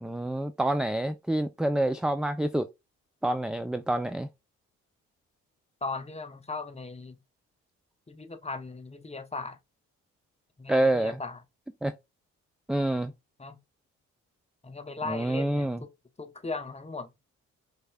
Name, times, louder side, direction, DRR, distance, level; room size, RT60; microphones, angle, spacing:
voice 1, 0.0-2.7 3.2-4.3 10.7-11.2 11.8-11.9 12.7-13.1 15.1-15.8, right 1 dB, ahead, 0.4 m, -27 dB
voice 2, 5.8-7.2 8.1-9.6 10.6-11.4 13.4-13.6 14.6-15.9 16.2-17.1, left 3 dB, 20° left, 0.9 m, -37 dB
5.2 x 3.6 x 2.3 m
supercardioid pair, 60°, 31 cm